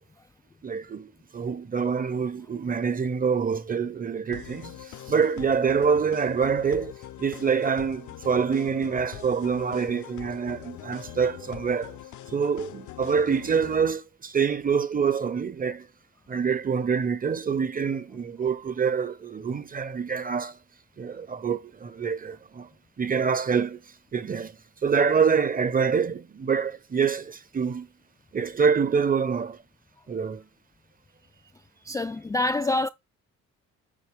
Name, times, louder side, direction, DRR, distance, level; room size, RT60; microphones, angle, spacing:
voice 1, 0.6-6.9 7.2-12.0 12.3-15.9 16.3-20.6 21.0-22.7 23.0-23.8 24.1-24.6 24.8-27.9 28.3-29.6 30.1-30.4, right 6 dB, 30° right, 0.7 m, -26 dB
sound 1, 4.3-13.9, left 13 dB, 70° left, 0.7 m, -43 dB
voice 2, 31.8-32.9, left 2 dB, 10° left, 0.3 m, -26 dB
8.6 x 4.2 x 3.3 m
cardioid pair, 90°, 30 cm